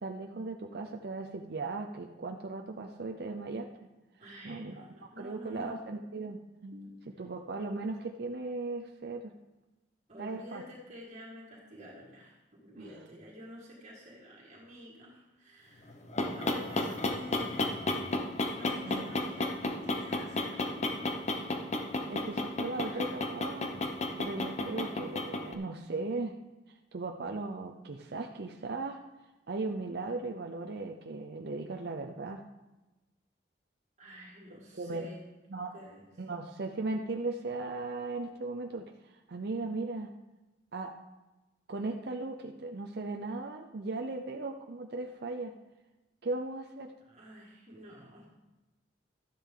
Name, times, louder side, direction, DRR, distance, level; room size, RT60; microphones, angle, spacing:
voice 1, 0.0-3.7 4.4-9.3 10.2-10.6 12.8-12.9 18.8-19.3 22.1-23.7 24.2-26.3 26.9-29.0 29.5-32.4 34.5-35.1 35.5-35.7 36.2-40.1 40.7-40.9 41.7-45.5 46.2-46.9, right 3 dB, 65° right, 3 dB, 0.7 m, -37 dB
voice 2, 4.2-5.9 6.8-7.0 10.1-16.0 16.3-17.7 18.6-21.5 21.8-22.3 22.8-23.2 34.0-35.2 35.7-36.1 47.0-48.3, equal, 40° right, -4 dB, 1.9 m, -49 dB
sound 1, 15.9-25.5, left 2 dB, 40° left, 1.0 m, -33 dB
12.5 x 10.0 x 3.8 m, 1.1 s
head